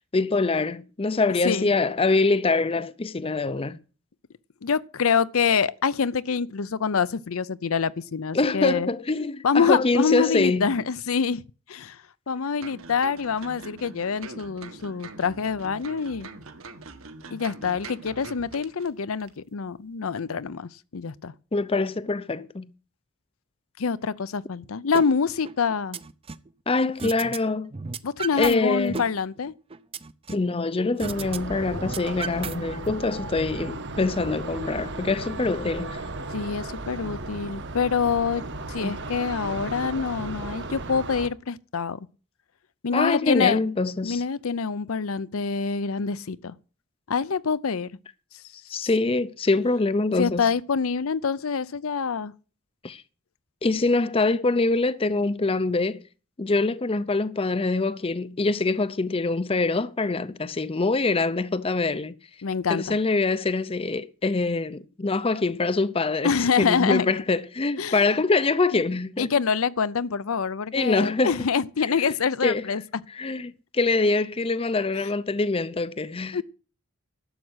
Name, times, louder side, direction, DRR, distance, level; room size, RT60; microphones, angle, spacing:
voice 1, 0.0-3.8 8.3-10.7 21.5-22.7 26.7-27.7 28.4-29.0 30.3-36.0 38.8-39.0 42.9-44.2 48.7-50.5 52.8-53.0 53.6-56.0 56.4-62.1 62.7-69.3 70.7-71.4 71.9-72.1 72.4-72.6 73.1-76.4, left 3 dB, 25° left, 0.5 m, -24 dB
voice 2, 4.6-8.9 9.4-11.4 11.7-16.3 17.3-21.3 23.8-26.0 28.0-29.5 36.3-38.4 38.7-42.0 42.8-43.6 44.0-46.5 47.1-47.9 50.2-52.3 62.4-63.0 66.2-67.1 67.8-68.1 68.7-68.8 69.2-72.8 76.3-76.4, left 5 dB, 70° left, 0.6 m, -26 dB
sound 1, 12.6-18.9 19.2-19.3, right 3 dB, 70° right, 1.6 m, -43 dB
sound 2, 24.9-25.1 25.4-26.5 27.0-27.4 27.7-28.5 28.9-30.5 31.0-31.4 31.7-32.9, right 4 dB, 25° right, 0.6 m, -34 dB
sound 3, 31.0-41.3, right 2 dB, 55° right, 1.2 m, -35 dB
12.0 x 7.4 x 8.1 m
head